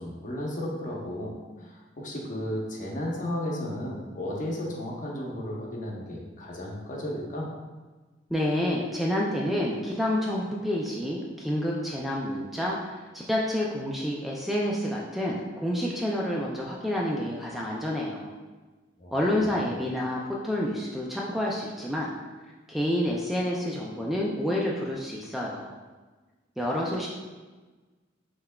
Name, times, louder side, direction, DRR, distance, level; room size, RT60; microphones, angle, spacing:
voice 1, 0.0-7.5 19.0-19.7, left 1 dB, 45° left, -2 dB, 0.8 m, -34 dB
voice 2, 8.3-18.3 19.1-22.1 22.7-25.7 26.6-27.1, left 1 dB, ahead, -4 dB, 0.3 m, -29 dB
5.6 x 3.4 x 2.2 m, 1.3 s
head